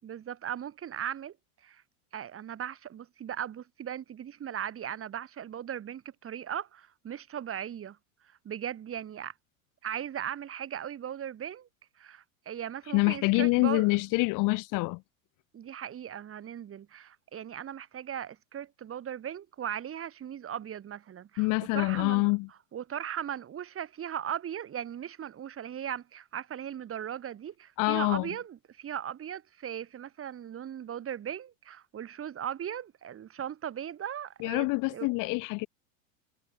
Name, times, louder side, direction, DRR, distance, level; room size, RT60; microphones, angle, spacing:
voice 1, 0.0-1.3 1.6-1.8 2.1-8.0 8.2-9.3 9.8-11.7 12.0-13.9 15.5-22.3 22.7-35.1, right 9 dB, 30° right, 7.2 m, -38 dB
voice 2, 12.9-15.0 21.4-22.5 27.8-28.3 34.4-35.7, left 26 dB, 50° left, 1.4 m, -26 dB
hypercardioid pair, 95°, 41 cm